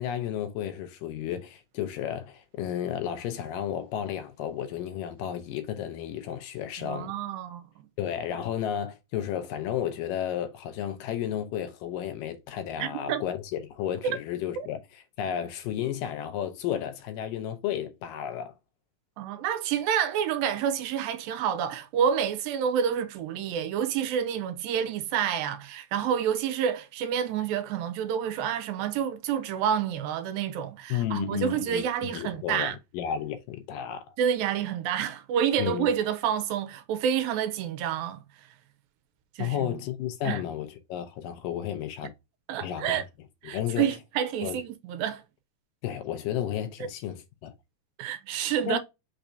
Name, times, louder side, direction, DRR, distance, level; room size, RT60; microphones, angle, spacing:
voice 1, 0.0-7.1 8.0-14.8 15.2-18.5 30.9-34.1 35.6-35.9 39.4-42.1 42.6-43.0 43.5-43.9 44.4-44.6 45.8-47.5 48.7-48.8, left 10 dB, 75° left, 2.2 m, -32 dB
voice 2, 6.8-7.9 12.8-13.2 14.0-14.2 14.6-14.7 19.2-32.8 34.2-38.5 39.4-39.8 40.2-40.4 42.0-42.1 42.5-43.0 43.4-45.2 48.0-48.8, right 8 dB, 85° right, 2.4 m, -28 dB
6.0 x 2.7 x 3.3 m
omnidirectional pair, 4.1 m